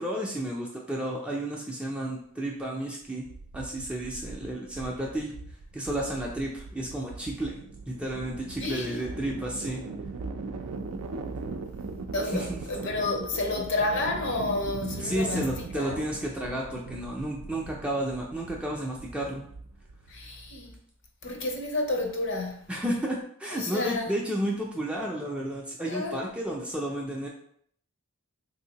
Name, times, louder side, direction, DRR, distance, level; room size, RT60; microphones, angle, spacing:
voice 1, 0.0-3.3 3.5-5.3 5.7-7.6 7.9-9.8 12.3-12.6 15.0-19.5 22.7-27.3, right 1 dB, 5° right, 0.3 m, -32 dB
sound 1, 3.3-20.2, right 3 dB, 85° right, 0.4 m, -40 dB
voice 2, 8.6-9.0 12.1-16.0 20.1-20.7 21.2-22.6 23.5-24.1 25.9-26.2, left 2 dB, 55° left, 0.6 m, -30 dB
3.5 x 2.7 x 2.8 m
head